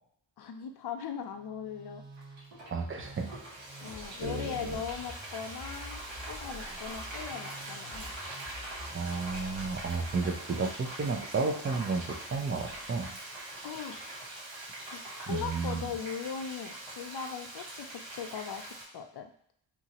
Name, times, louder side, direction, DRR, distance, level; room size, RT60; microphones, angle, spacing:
voice 1, 0.4-2.0 3.8-6.0 6.3-8.1 13.6-14.0 14.9-15.0 15.3-19.3, left 7 dB, 55° left, 6 dB, 0.5 m, -39 dB
Musical instrument, 1.3-13.1, equal, 10° right, 1.1 m, -50 dB
Frying (food), 2.2-18.8, right 1 dB, 70° right, 1.2 m, -43 dB
voice 2, 2.7-3.3 4.2-4.8 8.9-13.1 15.3-15.9, right 4 dB, 25° right, 3 dB, 0.5 m, -32 dB
2.9 x 2.5 x 2.8 m, 0.65 s
cardioid pair, 55°, 48 cm